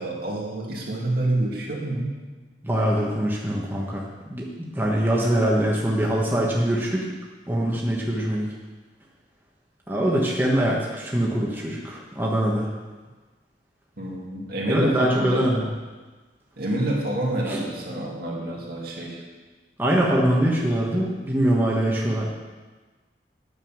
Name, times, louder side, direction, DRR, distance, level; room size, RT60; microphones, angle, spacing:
voice 1, 0.0-2.1 14.0-15.5 16.6-19.2, right 1 dB, 60° right, -2 dB, 2.3 m, -28 dB
voice 2, 2.6-4.0 4.3-7.1 7.5-8.5 9.9-12.7 14.7-15.6 17.5-17.6 19.8-22.3, right 1 dB, 10° right, -4 dB, 1.3 m, -23 dB
9.4 x 6.8 x 7.3 m, 1.3 s
head